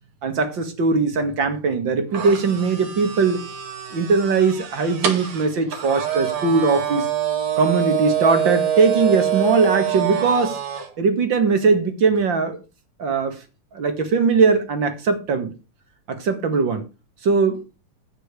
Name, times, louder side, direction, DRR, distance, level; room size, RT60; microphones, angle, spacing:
voice 1, 0.2-3.4 3.9-7.1 7.6-10.6 11.0-12.6 13.0-13.4 13.7-15.5 16.1-16.8 17.2-17.6, right 4 dB, 40° right, 2.2 m, -20 dB
sound 1, 2.1-10.9, right 10 dB, 60° right, 3.3 m, -25 dB
11.5 x 9.1 x 4.9 m
omnidirectional pair, 3.5 m